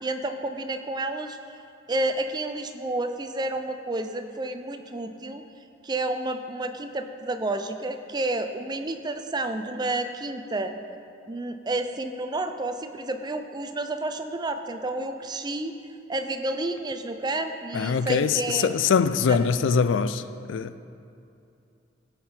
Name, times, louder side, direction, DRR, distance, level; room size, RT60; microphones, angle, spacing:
voice 1, 0.0-1.4 1.9-5.4 5.8-10.7 11.3-15.7 16.1-18.8 19.3-19.4, right 2 dB, 20° right, 0.5 m, -30 dB
voice 2, 17.7-20.2 20.5-20.7, left 6 dB, 70° left, 0.3 m, -23 dB
16.5 x 5.5 x 4.4 m
head